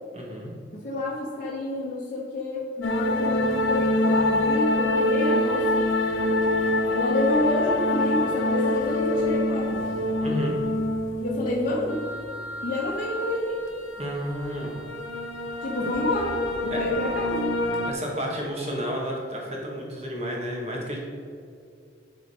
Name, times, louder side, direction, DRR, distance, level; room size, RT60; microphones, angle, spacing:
voice 1, 0.1-0.5 10.2-10.6 14.0-14.8 16.7-16.9 17.9-21.0, equal, 35° right, -2 dB, 1.6 m, -31 dB
voice 2, 0.8-5.9 6.9-9.8 11.1-12.0 12.6-13.6 15.6-17.5, left 2 dB, 45° left, -6 dB, 1.1 m, -28 dB
sound 1, 2.8-17.9, left 1 dB, 85° left, 0.7 m, -26 dB
11.5 x 3.8 x 4.9 m, 2.3 s
head